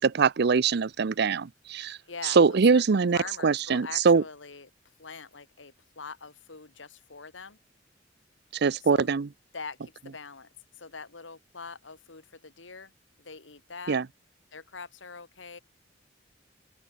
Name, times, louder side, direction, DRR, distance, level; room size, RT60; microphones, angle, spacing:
voice 1, 0.0-2.0 2.2-4.2 8.6-9.3 13.9-14.0, right 5 dB, 60° right, 0.5 m, -23 dB
voice 2, 2.1-4.7 5.0-7.6 8.8-9.1 9.5-12.9 13.2-14.0 14.5-15.6, left 4 dB, 80° left, 2.0 m, -43 dB
open air
head